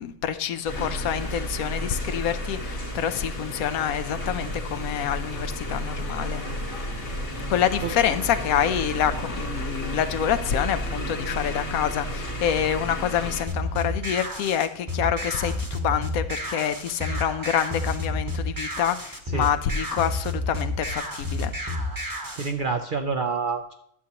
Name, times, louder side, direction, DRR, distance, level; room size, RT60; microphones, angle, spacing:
voice 1, 0.0-6.4 7.5-21.5, left 9 dB, 90° left, 11 dB, 1.1 m, -27 dB
sound 1, 0.6-13.4, equal, 65° left, 2.0 m, -32 dB
sound 2, 13.5-22.5, left 1 dB, 20° right, 0.8 m, -30 dB
voice 2, 22.4-23.7, right 5 dB, 65° right, 6 dB, 0.5 m, -27 dB
11.0 x 7.3 x 2.9 m, 0.72 s
omnidirectional pair, 1.4 m